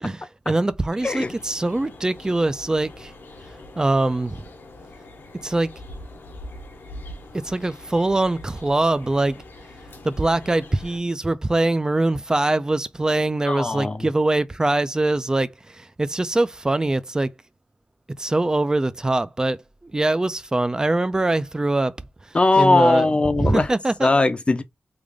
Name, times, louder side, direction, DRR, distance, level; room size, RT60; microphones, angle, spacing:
voice 1, 0.0-3.1 3.8-4.4 5.4-5.7 7.4-9.4 10.0-17.3 18.2-21.9 22.6-23.1 23.4-24.1, right 2 dB, 20° right, 0.4 m, -23 dB
sound 1, 1.0-11.0, left 1 dB, 85° left, 1.1 m, -42 dB
voice 2, 1.0-1.4 13.4-14.1 22.3-23.7 24.0-24.6, left 2 dB, 30° left, 0.6 m, -19 dB
3.4 x 2.5 x 3.6 m
wide cardioid pair, 100°, 4 cm